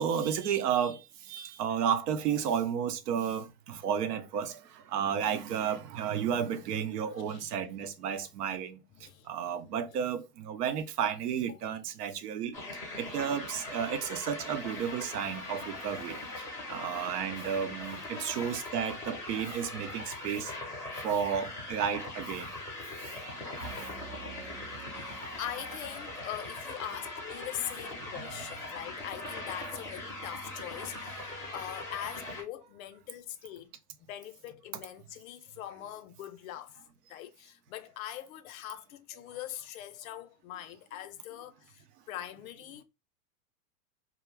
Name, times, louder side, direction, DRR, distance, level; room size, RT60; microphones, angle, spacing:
voice 1, 0.0-8.8 9.3-12.6 13.0-16.2 16.7-20.5 21.0-22.5 23.0-23.7 28.2-28.3, right 8 dB, 80° right, 0.7 m, -32 dB
voice 2, 9.0-9.3 18.2-18.6 19.3-19.6 20.0-20.1 24.9-33.7 34.1-36.8 37.1-42.8, left 12 dB, 60° left, 0.5 m, -42 dB
sound 1, 12.5-32.4, left 2 dB, 5° left, 0.5 m, -41 dB
sound 2, 23.6-27.2, right 5 dB, 40° right, 0.6 m, -49 dB
2.3 x 2.0 x 3.2 m
supercardioid pair, 140°, 47 cm